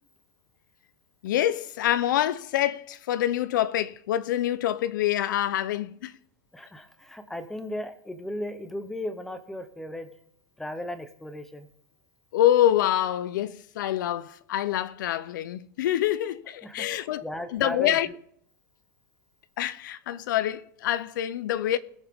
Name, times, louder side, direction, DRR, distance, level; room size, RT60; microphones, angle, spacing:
voice 1, 1.2-6.1 12.3-17.2 17.5-18.1 19.6-21.8, left 12 dB, 85° left, 0.6 m, -26 dB
voice 2, 6.5-10.1 10.6-11.7 16.6-18.0, left 1 dB, 5° left, 0.7 m, -36 dB
21.0 x 7.2 x 3.6 m
supercardioid pair, 170°, 10 cm